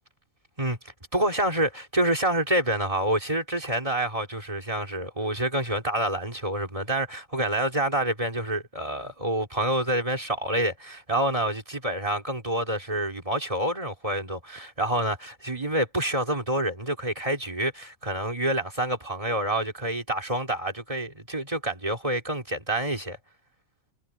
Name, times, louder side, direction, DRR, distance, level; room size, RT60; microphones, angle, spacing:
voice 1, 1.1-23.2, right 1 dB, 25° right, 3.2 m, -27 dB
omnidirectional pair, 1.3 m